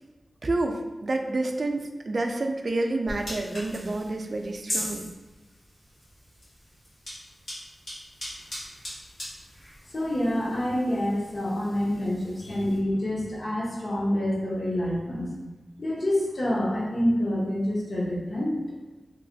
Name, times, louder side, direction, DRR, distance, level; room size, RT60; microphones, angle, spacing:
voice 1, 0.4-5.1, right 2 dB, 50° right, 4 dB, 0.3 m, -29 dB
sound 1, 3.1-12.8, equal, 90° left, 1.5 m, -40 dB
voice 2, 9.9-15.4 15.8-18.6, left 1 dB, 45° left, -4 dB, 0.8 m, -27 dB
3.1 x 2.8 x 2.6 m, 1.2 s
wide cardioid pair, 100°, 0 cm